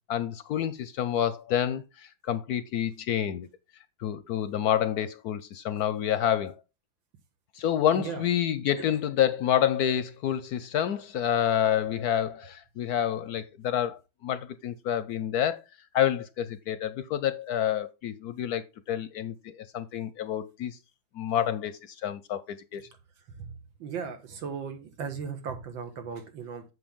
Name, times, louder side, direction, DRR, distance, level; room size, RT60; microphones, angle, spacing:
voice 1, 0.1-3.5 4.0-6.5 7.5-15.6 15.9-20.8 21.1-22.8, left 10 dB, 70° left, 0.9 m, -28 dB
voice 2, 7.9-8.3 23.4-26.6, right 6 dB, 90° right, 2.2 m, -37 dB
7.8 x 6.3 x 3.6 m
omnidirectional pair, 2.0 m